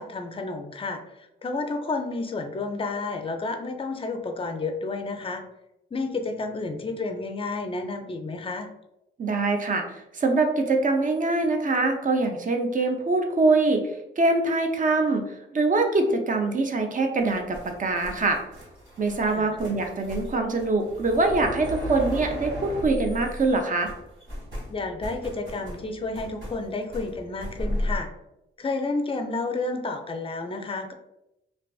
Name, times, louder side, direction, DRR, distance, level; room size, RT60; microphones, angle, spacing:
voice 1, 0.0-5.4 5.9-8.7 19.3-19.5 24.7-28.1 28.6-30.9, left 3 dB, 25° left, 5 dB, 0.4 m, -31 dB
voice 2, 9.2-13.9 14.2-18.4 19.0-23.9, right 3 dB, 40° right, 4 dB, 0.5 m, -24 dB
sound 1, 17.2-23.6 23.8-28.0, equal, 60° right, 1.2 m, -35 dB
2.4 x 2.3 x 2.3 m, 0.86 s
cardioid pair, 55°, 21 cm